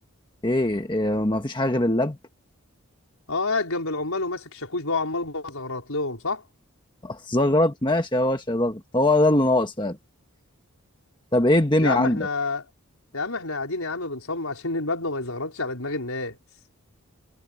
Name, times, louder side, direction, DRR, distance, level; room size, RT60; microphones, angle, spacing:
voice 1, 0.4-2.2 7.0-10.0 11.3-12.2, left 1 dB, 20° left, 1.4 m, -22 dB
voice 2, 3.3-6.4 11.8-12.7 13.1-16.4, left 3 dB, 75° left, 4.7 m, -28 dB
head